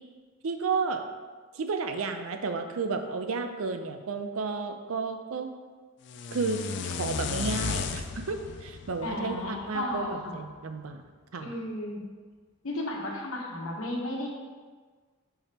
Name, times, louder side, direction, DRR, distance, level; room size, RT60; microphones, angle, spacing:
voice 1, 0.4-1.0 1.5-5.5 6.3-11.0 11.3-11.5, right 4 dB, 80° right, 7 dB, 0.5 m, -32 dB
sound 1, 6.1-10.2, left 5 dB, 55° left, 0.3 m, -35 dB
voice 2, 9.0-10.4 11.4-12.0 12.6-14.3, left 1 dB, 80° left, -1 dB, 1.2 m, -33 dB
5.1 x 4.6 x 4.3 m, 1.5 s
head